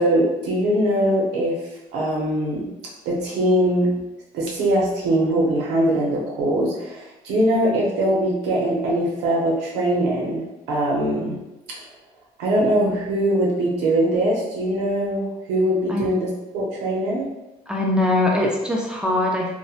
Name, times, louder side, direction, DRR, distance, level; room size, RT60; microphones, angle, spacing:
voice 1, 0.0-1.6 1.9-2.7 3.1-3.9 4.3-11.4 12.4-16.3 16.5-17.2, right 1 dB, 85° right, -3 dB, 0.6 m, -21 dB
voice 2, 17.7-19.6, left 1 dB, 5° right, -3 dB, 0.4 m, -22 dB
2.8 x 2.1 x 2.4 m, 1.0 s
cardioid pair, 110°, 17 cm